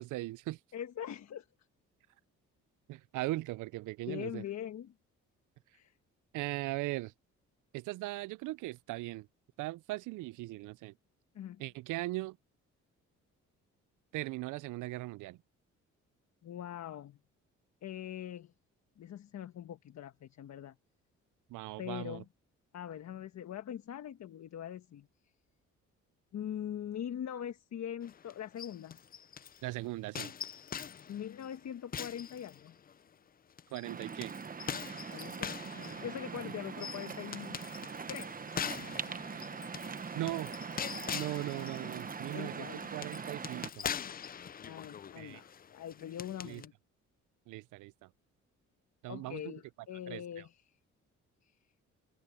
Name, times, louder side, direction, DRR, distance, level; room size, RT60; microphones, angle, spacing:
voice 1, 0.0-0.6 2.9-4.4 6.3-7.1 7.7-9.3 9.6-10.9 11.6-12.4 14.1-15.4 21.5-22.2 29.6-30.3 33.7-34.3 39.3-39.5 40.1-40.5 41.1-43.9 45.2-45.4 46.4-46.6 47.5-48.1 49.0-49.5 50.1-50.2, right 18 dB, 80° right, 0.5 m, -39 dB
voice 2, 0.7-1.5 4.1-4.9 5.7-5.9 11.3-11.6 16.4-17.2 17.8-18.5 19.0-20.7 21.8-22.2 22.7-25.1 26.3-29.0 31.1-32.8 35.1-37.6 38.1-38.3 42.3-42.9 44.2-46.7 49.1-50.8 51.4-51.6, left 10 dB, 60° left, 1.4 m, -42 dB
sound 1, 28.0-29.6 30.2-33.0 33.6-46.7, left 8 dB, 30° left, 0.5 m, -43 dB
Waves surf, 33.8-43.7, right 5 dB, 30° right, 1.0 m, -42 dB
open air
cardioid pair, 90°, 30 cm